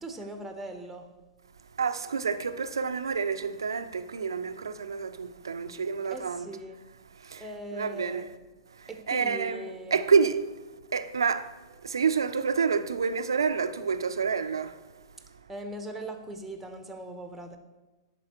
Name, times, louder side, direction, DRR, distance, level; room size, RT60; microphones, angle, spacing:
voice 1, 0.0-1.1 6.1-6.8 7.4-8.3 8.9-10.0 15.5-17.6, right 1 dB, 5° right, 0.8 m, -40 dB
voice 2, 1.8-6.5 7.2-7.4 7.7-8.2 9.1-10.4 10.9-11.5 11.8-14.7, right 5 dB, 90° right, 0.4 m, -28 dB
11.0 x 4.0 x 2.9 m
hypercardioid pair, 115°, 2 cm